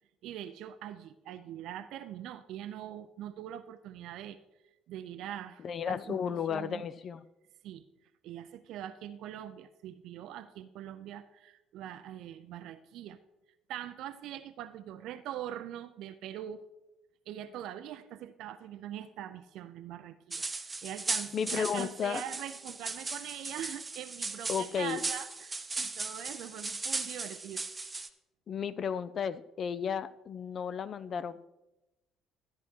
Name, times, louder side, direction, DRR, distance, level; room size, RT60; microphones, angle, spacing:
voice 1, 0.2-4.4 4.9-6.8 7.6-7.9 8.2-13.2 13.7-16.6 17.3-27.8, right 11 dB, 60° right, 11 dB, 0.4 m, -43 dB
voice 2, 5.6-7.2 21.3-22.2 24.5-25.0 28.5-31.4, left 7 dB, 45° left, 14 dB, 0.4 m, -33 dB
sound 1, 20.3-28.1, right 3 dB, 20° right, 0.7 m, -37 dB
13.5 x 9.6 x 3.2 m, 0.98 s
figure-of-eight pair, 50°, 0 cm